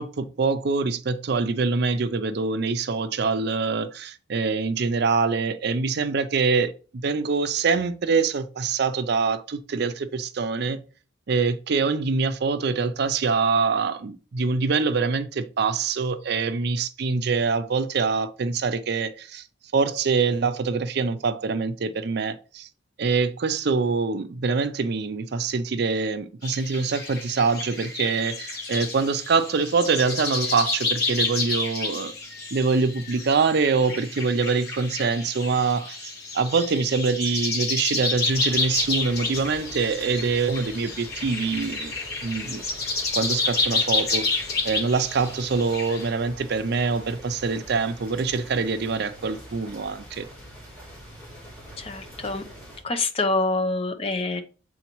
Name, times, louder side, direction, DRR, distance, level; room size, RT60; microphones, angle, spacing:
voice 1, 0.0-10.8 11.3-19.4 19.7-22.7 23.0-32.1 32.5-41.9 42.2-42.6 43.1-50.3, right 4 dB, 55° right, 0.5 m, -24 dB
sound 1, 26.4-46.1, left 3 dB, 55° left, 1.6 m, -30 dB
sound 2, 38.2-52.8, equal, 10° left, 3.3 m, -44 dB
voice 2, 51.8-52.4 52.8-54.4, left 3 dB, 30° left, 0.7 m, -26 dB
8.1 x 3.9 x 3.0 m
head